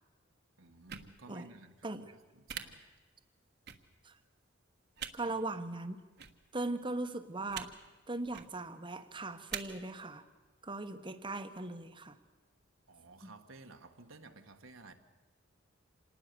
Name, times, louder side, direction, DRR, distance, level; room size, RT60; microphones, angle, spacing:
voice 1, 0.6-2.1 2.3-2.9 5.2-5.3 12.9-14.9, right 3 dB, 75° right, 5 dB, 1.6 m, -54 dB
sound 1, 0.9-1.1 2.5-2.6 3.7-3.8 5.0-5.1 6.2-6.3 7.5-7.7 8.2-8.5 9.5-9.6, right 9 dB, 55° right, 1.4 m, -41 dB
voice 2, 5.1-6.0 6.5-7.7 8.1-10.3 10.6-12.2 13.2-13.3, right 2 dB, 25° right, 9 dB, 1.2 m, -39 dB
27.0 x 19.5 x 6.9 m, 1.3 s
head